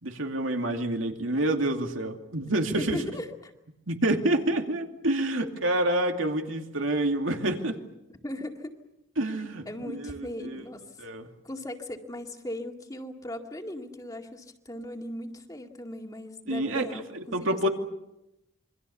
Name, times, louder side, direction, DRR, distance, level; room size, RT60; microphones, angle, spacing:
voice 1, 0.0-3.0 3.9-7.8 9.2-10.6 11.0-11.3 16.5-16.8 17.1-17.7, right 1 dB, 85° right, 4 dB, 2.6 m, -28 dB
voice 2, 2.4-3.5 8.2-8.7 9.7-11.1 11.4-17.7, left 1 dB, 20° left, 3 dB, 2.1 m, -38 dB
27.5 x 24.0 x 7.1 m, 0.90 s
head